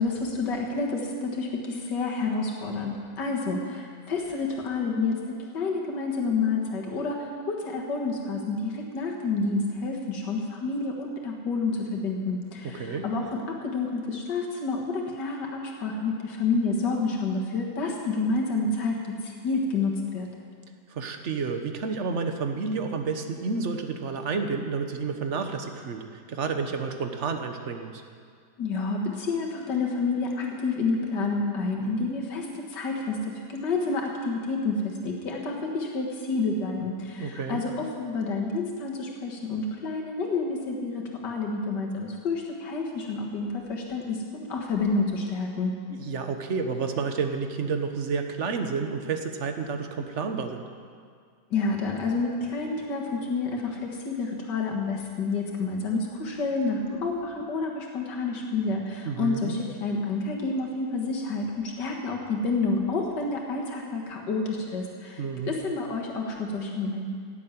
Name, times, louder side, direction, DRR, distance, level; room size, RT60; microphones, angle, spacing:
voice 1, 0.0-20.3 28.6-45.7 51.5-67.1, left 3 dB, 80° left, -1 dB, 2.3 m, -29 dB
voice 2, 12.6-13.0 20.9-28.0 37.2-37.6 46.0-50.6 59.0-59.6 65.2-65.5, right 5 dB, 45° right, 6 dB, 1.3 m, -30 dB
16.0 x 7.5 x 9.2 m, 2.1 s
omnidirectional pair, 1.8 m